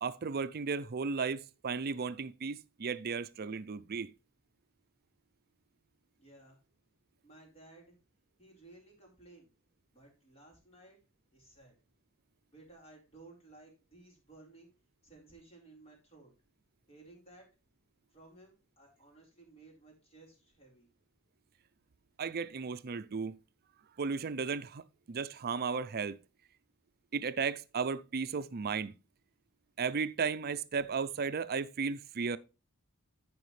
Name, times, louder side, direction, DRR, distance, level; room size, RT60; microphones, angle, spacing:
voice 1, 0.0-4.1 22.2-23.4 24.0-26.2 27.1-28.9 29.8-32.4, right 5 dB, 45° right, 0.5 m, -35 dB
voice 2, 6.2-6.6 7.2-8.0 8.4-9.5 9.9-11.0 11.3-11.7 12.5-14.7 15.0-16.3 16.9-17.5 18.1-20.9, right 2 dB, 30° left, 4.4 m, -57 dB
14.5 x 5.1 x 3.2 m
head